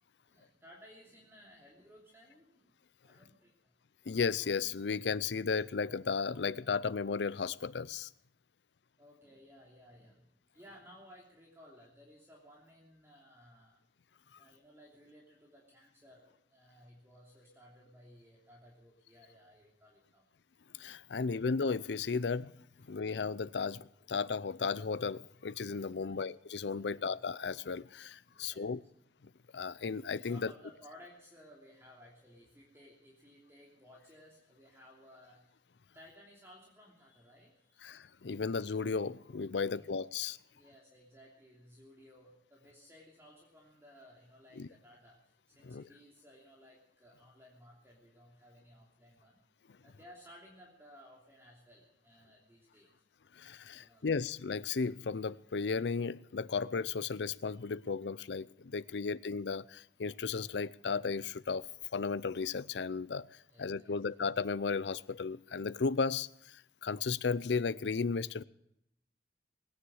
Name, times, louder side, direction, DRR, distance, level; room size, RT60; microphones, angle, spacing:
voice 1, 0.2-2.7 3.0-3.7 9.0-13.8 14.4-20.3 25.8-26.2 26.7-27.1 28.3-28.7 30.2-35.4 35.9-38.0 39.5-39.9 40.5-49.4 49.8-52.9 53.6-54.1 63.5-63.9, equal, 15° right, 3.0 m, -58 dB
voice 2, 4.1-8.1 14.3-14.4 20.7-22.5 22.8-28.8 29.5-30.5 37.8-40.4 44.6-44.7 45.6-45.8 53.3-61.7 61.9-68.4, left 5 dB, 75° left, 0.5 m, -35 dB
20.5 x 9.8 x 6.4 m
head